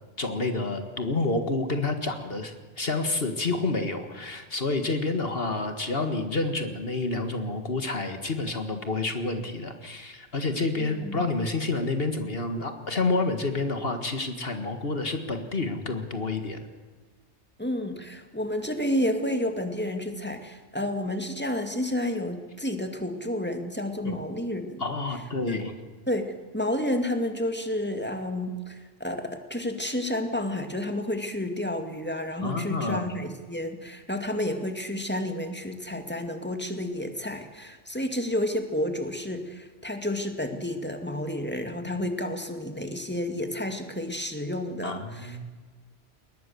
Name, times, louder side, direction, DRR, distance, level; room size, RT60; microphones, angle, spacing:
voice 1, 0.2-16.6 24.0-24.2 24.8-25.7 32.4-33.1 44.8-45.4, left 3 dB, 55° left, 7 dB, 2.0 m, -29 dB
voice 2, 10.8-11.2 17.6-24.8 25.4-25.6 26.1-45.4, left 1 dB, 10° left, 5 dB, 2.2 m, -30 dB
21.5 x 20.0 x 7.0 m, 1.4 s
omnidirectional pair, 1.2 m